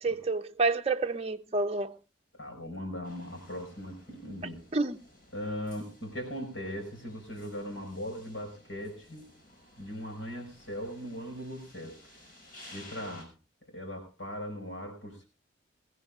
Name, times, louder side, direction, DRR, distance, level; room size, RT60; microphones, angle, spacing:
voice 1, 0.0-2.0 4.7-5.0, right 3 dB, 35° right, 0.7 m, -29 dB
voice 2, 2.3-4.6 5.3-9.3 9.7-12.0 12.7-13.3 13.7-15.2, equal, 80° left, 5.2 m, -39 dB
sound 1, 3.0-13.2, left 1 dB, 50° left, 6.2 m, -55 dB
22.0 x 15.5 x 2.4 m
head